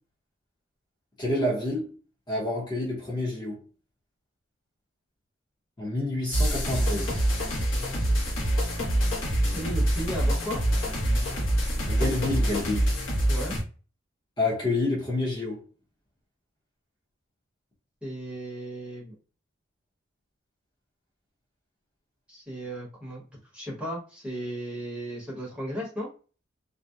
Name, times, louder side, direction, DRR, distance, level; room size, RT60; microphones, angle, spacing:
voice 1, 1.2-2.0 2.3-3.6 5.8-7.1 11.9-12.9 14.4-15.6, left 2 dB, 20° left, 0.7 m, -28 dB
sound 1, 6.3-13.6, right 1 dB, 70° left, 0.8 m, -25 dB
voice 2, 9.5-10.6 13.3-13.5 18.0-19.1 22.3-23.2 23.5-26.1, right 1 dB, 5° right, 0.9 m, -35 dB
2.6 x 2.0 x 2.3 m
head